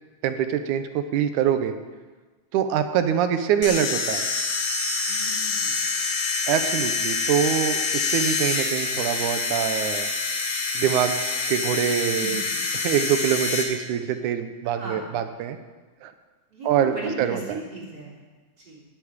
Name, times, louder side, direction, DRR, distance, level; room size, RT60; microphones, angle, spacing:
voice 1, 0.2-1.8 2.5-4.3 6.5-10.1 10.7-11.2 11.5-12.4 12.7-15.6 16.0-16.1 16.6-17.6, right 9 dB, 90° right, 9 dB, 2.4 m, -24 dB
sound 1, 3.6-13.6, left 4 dB, 75° left, 2.7 m, -26 dB
voice 2, 5.1-5.8 12.1-12.7 14.6-15.0 16.5-18.2 18.6-18.8, right 2 dB, 35° right, -2 dB, 3.9 m, -36 dB
11.0 x 8.5 x 9.6 m, 1.3 s
omnidirectional pair, 3.4 m